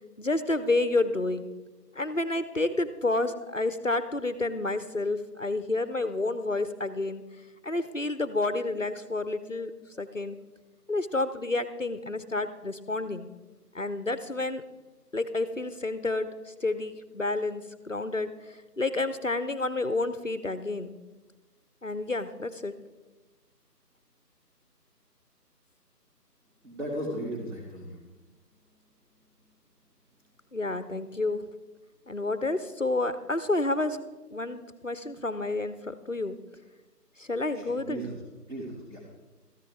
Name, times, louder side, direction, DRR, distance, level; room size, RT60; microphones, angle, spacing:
voice 1, 0.2-1.5 1.9-7.2 7.6-10.4 10.9-13.3 13.7-14.6 15.1-20.9 21.8-22.7 30.5-31.4 32.1-34.0 34.3-36.4 37.2-38.0, left 2 dB, 50° left, 13 dB, 0.6 m, -30 dB
voice 2, 26.6-28.0 37.5-38.1 38.5-39.0, right 1 dB, 45° right, -3 dB, 2.3 m, -36 dB
13.5 x 9.7 x 4.7 m, 1.2 s
figure-of-eight pair, 180°, 49 cm